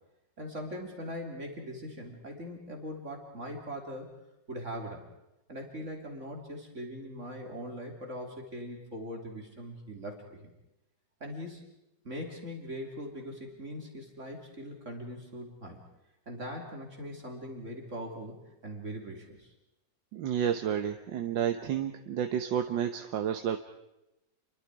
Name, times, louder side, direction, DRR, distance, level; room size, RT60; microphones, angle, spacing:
voice 1, 0.4-4.1 4.5-5.1 5.5-10.5 11.2-11.6 12.0-15.8 16.3-19.5, equal, 40° right, 1 dB, 3.5 m, -41 dB
voice 2, 20.1-23.6, right 9 dB, 80° right, 7 dB, 1.7 m, -30 dB
29.0 x 23.5 x 4.8 m, 0.90 s
omnidirectional pair, 2.0 m